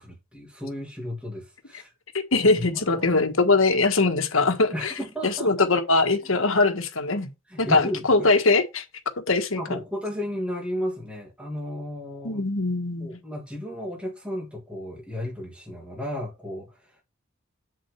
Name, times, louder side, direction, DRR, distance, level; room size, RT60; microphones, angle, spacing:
voice 1, 0.0-1.9 2.6-3.5 4.7-5.7 6.2-6.3 7.5-8.3 9.5-12.4 13.0-17.0, left 1 dB, 5° right, 2.7 m, -34 dB
voice 2, 2.1-4.9 5.2-7.3 7.6-8.8 9.3-9.6 12.2-13.2, left 3 dB, 75° left, 1.6 m, -22 dB
7.7 x 7.6 x 3.5 m
head